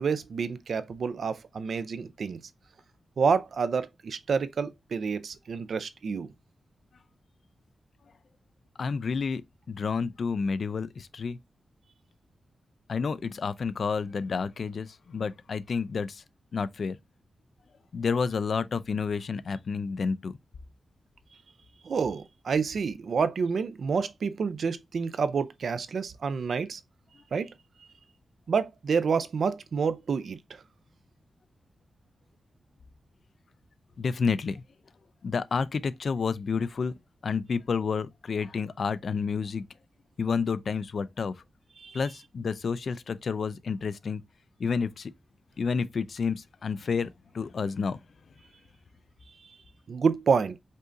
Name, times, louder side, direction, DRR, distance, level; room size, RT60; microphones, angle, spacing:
voice 1, 0.0-2.4 3.2-6.3 21.8-26.8 27.3-27.5 28.5-30.6 41.8-42.0 49.9-50.6, right 5 dB, 60° right, 0.4 m, -28 dB
voice 2, 8.8-9.4 9.7-11.4 12.9-16.2 16.5-17.0 17.9-20.3 34.0-34.6 35.2-36.9 37.2-39.6 40.2-41.3 41.9-44.2 44.6-45.1 45.6-48.0, left 5 dB, 55° left, 0.4 m, -30 dB
5.4 x 2.6 x 3.7 m
wide cardioid pair, 175°, 0 cm